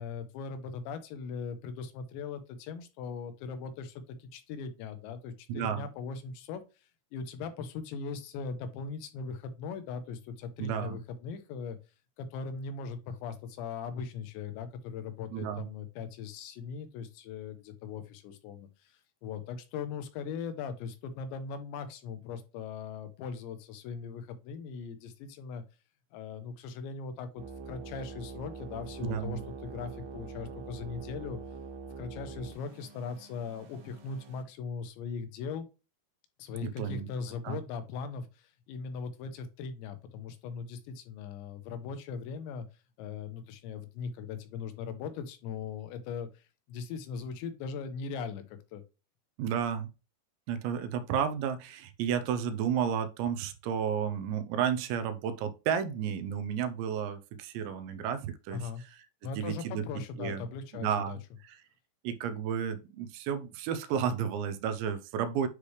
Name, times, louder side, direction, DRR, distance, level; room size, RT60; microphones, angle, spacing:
voice 1, 0.0-6.6 7.1-11.8 12.2-25.6 26.1-31.4 32.0-35.7 36.4-42.7 43.0-48.8 58.5-58.8 59.2-61.2, left 5 dB, 80° left, 3.1 m, -39 dB
voice 2, 5.5-5.8 10.6-11.0 15.3-15.7 29.0-29.4 36.6-37.1 37.4-37.6 49.4-49.9 50.5-58.6 59.4-59.8 60.2-60.5 60.7-61.2 61.5-61.6 62.0-65.5, right 8 dB, 85° right, 2.9 m, -32 dB
sound 1, 27.4-34.4, right 4 dB, 70° right, 3.1 m, -44 dB
9.8 x 3.3 x 3.2 m
omnidirectional pair, 5.2 m